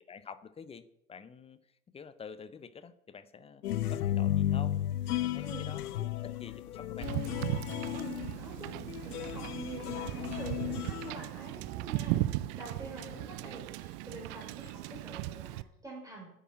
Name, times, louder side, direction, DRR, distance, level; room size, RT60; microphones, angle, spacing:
voice 1, 0.1-1.6 1.9-3.6 3.9-4.9 5.2-7.2 13.0-13.2, left 6 dB, 15° left, 14 dB, 0.6 m, -48 dB
sound 1, 3.6-11.1, left 12 dB, 70° left, 0.7 m, -34 dB
Wind / Boat Water vehicle, 7.0-15.6, right 16 dB, 25° right, 0.4 m, -37 dB
voice 2, 7.9-8.8 9.0-16.3, right 2 dB, 5° right, -3 dB, 4.4 m, -46 dB
10.0 x 8.7 x 7.7 m, 0.81 s
figure-of-eight pair, 90°, 47 cm